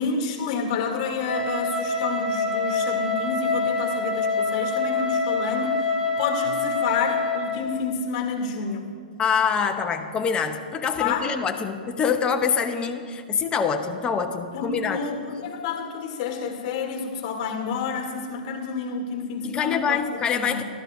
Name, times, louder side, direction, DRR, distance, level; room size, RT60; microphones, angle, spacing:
voice 1, 0.0-8.9 11.0-11.3 14.5-20.0 20.3-20.6, left 5 dB, 45° left, 3 dB, 1.8 m, -29 dB
Wind instrument woodwind instrument, 1.2-7.7, left 3 dB, 15° right, 2.0 m, -26 dB
voice 2, 9.2-15.0 19.4-20.6, left 6 dB, 20° left, 6 dB, 0.8 m, -25 dB
14.5 x 12.5 x 2.6 m, 2.1 s
hypercardioid pair, 115°, 5 cm